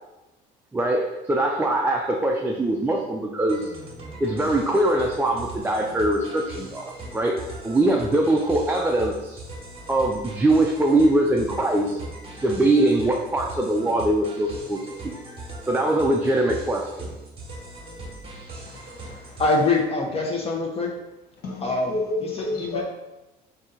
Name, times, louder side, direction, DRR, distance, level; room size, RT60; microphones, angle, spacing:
voice 1, 0.7-3.7 4.2-7.4 7.6-9.4 9.9-12.0 12.4-15.2 15.7-17.1, right 1 dB, 10° right, 0 dB, 0.4 m, -22 dB
sound 1, 3.5-19.8, right 2 dB, 35° right, 1.3 m, -40 dB
voice 2, 18.7-20.9 21.6-21.9 22.6-22.8, left 3 dB, 35° left, 0 dB, 0.9 m, -25 dB
voice 3, 21.4-22.8, left 2 dB, 70° left, -1 dB, 0.9 m, -29 dB
4.1 x 2.7 x 3.7 m, 0.99 s
cardioid pair, 110°, 17 cm